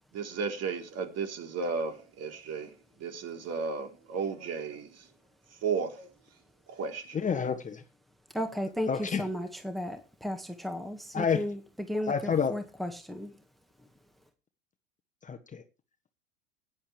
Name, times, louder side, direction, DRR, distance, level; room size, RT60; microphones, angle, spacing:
voice 1, 0.1-2.7 3.0-4.9 5.6-6.1 6.7-7.2, right 5 dB, 40° right, 3.7 m, -34 dB
voice 2, 7.1-7.8 8.9-9.2 11.1-11.4 12.1-12.5 15.3-15.6, left 6 dB, 20° left, 1.3 m, -29 dB
voice 3, 8.3-13.4, equal, ahead, 1.7 m, -35 dB
17.0 x 10.5 x 3.4 m
hypercardioid pair, 95°, 38 cm